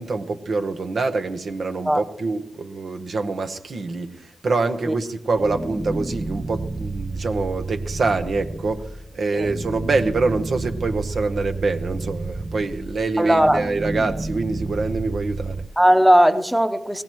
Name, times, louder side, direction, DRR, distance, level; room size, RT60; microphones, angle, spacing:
voice 1, 0.0-15.6, right 3 dB, 70° right, 6 dB, 1.0 m, -25 dB
sound 1, 5.4-15.7, right 2 dB, 30° right, 0.6 m, -31 dB
voice 2, 13.2-13.6 15.8-17.0, equal, 10° right, 8 dB, 0.9 m, -17 dB
22.5 x 17.0 x 3.1 m, 0.76 s
cardioid pair, 45°, 0 cm